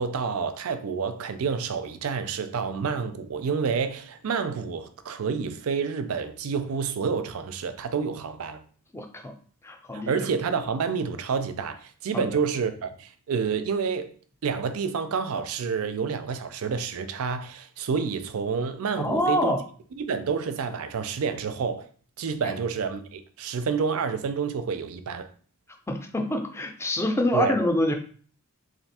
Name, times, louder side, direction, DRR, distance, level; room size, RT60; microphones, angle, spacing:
voice 1, 0.0-8.6 9.9-14.1 14.4-19.5 20.0-21.9 22.2-25.3 27.3-27.6, right 5 dB, 70° right, 0.4 m, -29 dB
voice 2, 8.9-9.3 9.6-10.1 12.1-12.2 19.0-19.6 22.4-22.5 25.9-27.9, left 1 dB, 10° left, 0.5 m, -26 dB
3.4 x 2.5 x 4.2 m
head